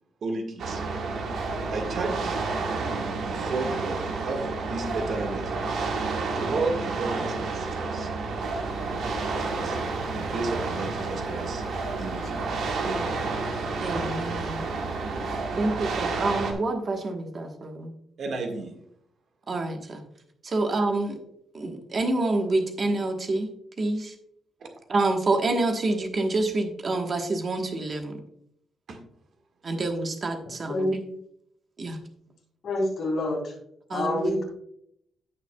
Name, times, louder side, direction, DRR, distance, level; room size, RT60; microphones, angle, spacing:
voice 1, 0.2-0.8 1.7-2.4 2.7-5.5 6.2-8.1 9.2-9.8 10.1-12.5 12.8-13.4 18.2-18.7 24.6-24.7 28.9-29.0, right 3 dB, 50° right, 3 dB, 1.6 m, -33 dB
sound 1, 0.6-16.5, right 3 dB, 75° right, 1.7 m, -30 dB
Engine, 8.7-15.4, left 3 dB, 65° left, 3.2 m, -45 dB
voice 2, 13.8-14.7 15.6-17.9 19.5-20.0 20.4-21.1 21.5-23.5 23.8-24.1 24.9-28.2 29.6-31.0 31.8-32.0 33.9-34.4, right 2 dB, 30° right, 4 dB, 1.2 m, -27 dB
voice 3, 32.6-33.5 33.9-34.4, left 2 dB, 50° left, -2 dB, 3.6 m, -27 dB
16.5 x 5.8 x 2.3 m, 0.71 s
wide cardioid pair, 175°, 0 cm